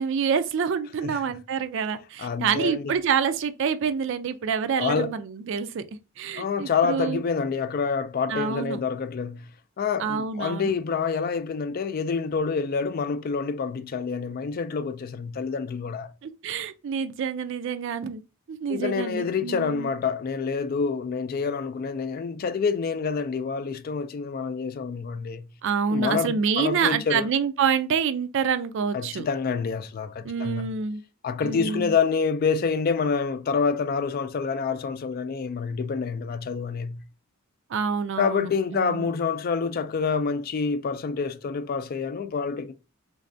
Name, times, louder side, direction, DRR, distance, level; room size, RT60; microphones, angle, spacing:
voice 1, 0.0-5.8 6.2-7.2 8.3-8.8 10.0-10.7 16.2-18.2 18.5-19.9 25.6-29.3 30.2-31.0 31.4-31.9 37.7-39.1, right 6 dB, 60° right, 0.3 m, -27 dB
voice 2, 2.2-2.9 4.8-5.1 6.4-9.5 9.8-16.1 18.7-25.5 25.9-27.3 28.9-30.7 31.2-37.0 38.2-42.7, left 5 dB, 45° left, 0.3 m, -27 dB
3.4 x 3.1 x 2.6 m
head